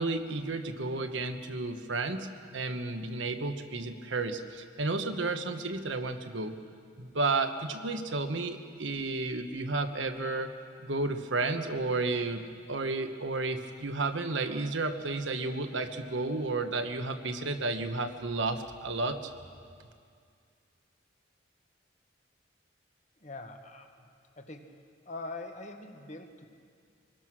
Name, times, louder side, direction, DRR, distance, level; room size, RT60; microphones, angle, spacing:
voice 1, 0.0-6.5 7.0-10.5 10.8-19.3, right 3 dB, 75° right, 7 dB, 1.2 m, -32 dB
voice 2, 23.2-24.1 24.4-24.7 25.0-26.4, left 2 dB, 35° left, 5 dB, 1.4 m, -43 dB
24.5 x 20.0 x 6.2 m, 2.2 s
head